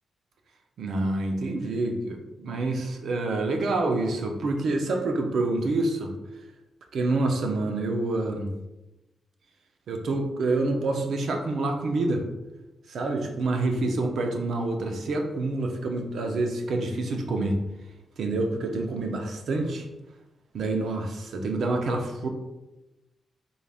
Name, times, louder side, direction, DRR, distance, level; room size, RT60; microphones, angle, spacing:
voice 1, 0.8-6.1 6.9-8.5 9.9-12.2 12.9-17.6 18.2-19.9 20.5-22.3, right 2 dB, 70° right, 3 dB, 0.6 m, -27 dB
3.9 x 3.4 x 2.4 m, 0.99 s
wide cardioid pair, 125°, 0 cm